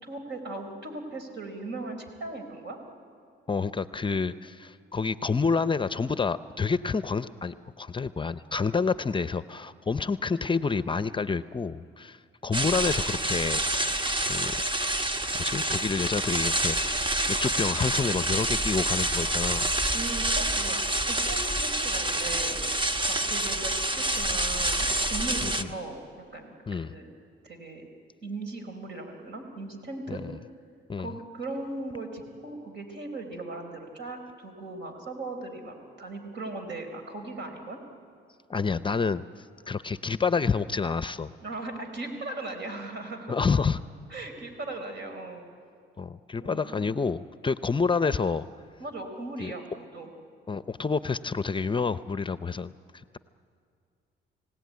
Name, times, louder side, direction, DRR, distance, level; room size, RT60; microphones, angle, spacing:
voice 1, 0.0-2.8 19.9-22.6 23.1-26.0 26.3-27.1 27.4-27.9 28.2-30.2 31.0-37.8 41.4-43.4 44.1-45.4 46.4-47.0 48.8-50.1, right 2 dB, 65° right, 5 dB, 4.2 m, -38 dB
voice 2, 3.5-13.9 14.2-14.5 15.3-19.7 25.4-25.7 26.7-27.0 30.1-30.3 30.9-31.1 38.5-41.3 43.3-43.8 46.0-48.5 49.4-49.5 50.5-52.7, left 5 dB, 25° left, 14 dB, 0.6 m, -28 dB
sound 1, 12.5-25.6, right 1 dB, 25° right, 1.2 m, -27 dB
29.5 x 17.5 x 9.5 m, 2.3 s
cardioid pair, 90°, 20 cm